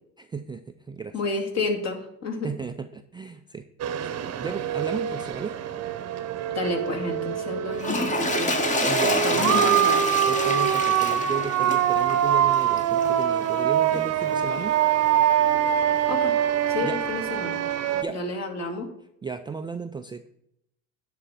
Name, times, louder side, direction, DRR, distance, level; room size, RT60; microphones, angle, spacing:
voice 1, 0.2-1.2 2.4-5.6 8.8-9.8 10.3-14.8 16.8-17.0 17.9-18.2 19.2-20.3, right 5 dB, 15° right, 7 dB, 0.3 m, -35 dB
voice 2, 1.1-2.5 6.5-8.6 9.0-10.2 16.1-16.3 16.7-17.5 18.1-18.9, left 3 dB, 45° left, 1 dB, 2.2 m, -30 dB
sound 1, 3.8-18.0, right 10 dB, 40° right, 0.9 m, -24 dB
Toilet flush, 7.7-13.2 13.9-14.0, left 2 dB, 20° left, 1.1 m, -28 dB
10.0 x 3.8 x 7.3 m, 0.75 s
hypercardioid pair, 70°, 38 cm